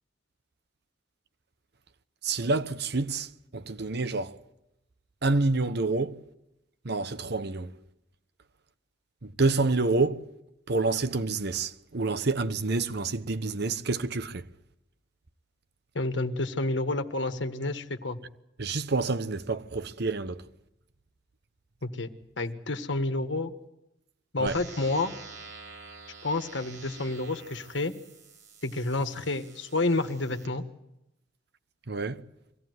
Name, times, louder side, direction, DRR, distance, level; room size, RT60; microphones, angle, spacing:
voice 1, 2.2-3.3 3.5-4.3 5.2-6.1 6.9-7.7 9.4-10.2 10.7-14.4 18.6-20.4 24.4-24.5 31.9-32.1, right 3 dB, 60° right, 1.0 m, -28 dB
voice 2, 15.9-18.2 21.8-22.1 22.4-23.5 24.3-25.1 26.2-27.9 28.6-30.6, left 2 dB, 70° left, 1.7 m, -29 dB
sound 1, 24.5-30.5, right 4 dB, 75° right, 5.1 m, -48 dB
23.5 x 17.0 x 9.4 m
head